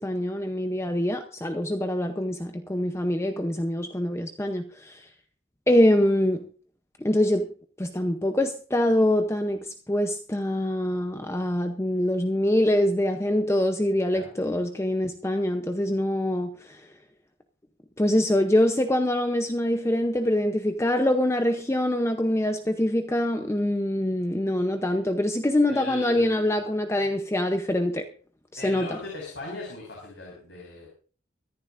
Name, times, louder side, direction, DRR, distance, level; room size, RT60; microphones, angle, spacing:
voice 1, 0.0-5.0 5.7-6.5 7.0-7.5 7.8-16.8 18.0-28.1 28.5-28.9, left 1 dB, 15° left, 0.7 m, -24 dB
voice 2, 25.7-26.7 28.6-30.9, left 2 dB, 70° left, 5.4 m, -39 dB
23.5 x 10.5 x 2.5 m
head